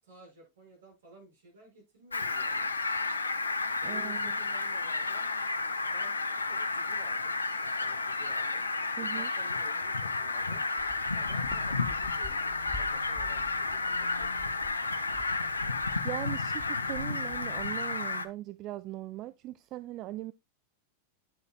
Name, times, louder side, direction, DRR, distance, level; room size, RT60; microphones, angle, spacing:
voice 1, 0.0-2.7 3.8-5.3 5.8-8.7 9.0-10.6 11.1-14.9, right 1 dB, 65° right, 6.7 m, -54 dB
Fowl, 2.1-18.3, left 3 dB, 75° left, 0.7 m, -32 dB
voice 2, 3.8-4.3 9.0-9.3 16.0-20.3, right 16 dB, 35° right, 0.4 m, -40 dB
sound 1, 10.8-17.9, left 2 dB, 25° left, 1.2 m, -48 dB
9.6 x 8.1 x 2.4 m
figure-of-eight pair, 90°, 0 cm